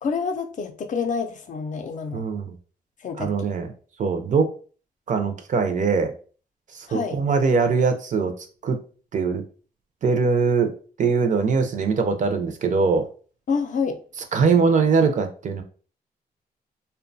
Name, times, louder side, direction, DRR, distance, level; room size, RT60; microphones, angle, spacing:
voice 1, 0.0-2.2 3.0-3.5 6.9-7.2 13.5-14.0, left 5 dB, 50° left, 6 dB, 0.4 m, -28 dB
voice 2, 2.1-2.5 3.2-3.7 4.0-4.5 5.1-6.1 6.7-8.3 8.6-8.8 9.1-9.4 10.0-10.7 11.0-13.1 14.3-15.6, right 5 dB, 50° right, 7 dB, 0.5 m, -21 dB
2.7 x 2.2 x 2.6 m, 0.39 s
cardioid pair, 110°, 16 cm